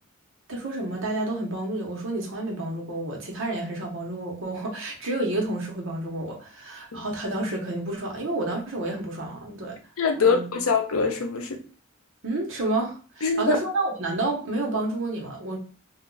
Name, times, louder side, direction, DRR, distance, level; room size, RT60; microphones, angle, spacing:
voice 1, 0.5-9.8 10.2-10.4 12.2-15.6, right 2 dB, 65° right, 1.1 m, -30 dB
voice 2, 10.0-11.6 13.2-13.6, left 5 dB, 75° left, 0.6 m, -23 dB
2.4 x 2.3 x 3.9 m
head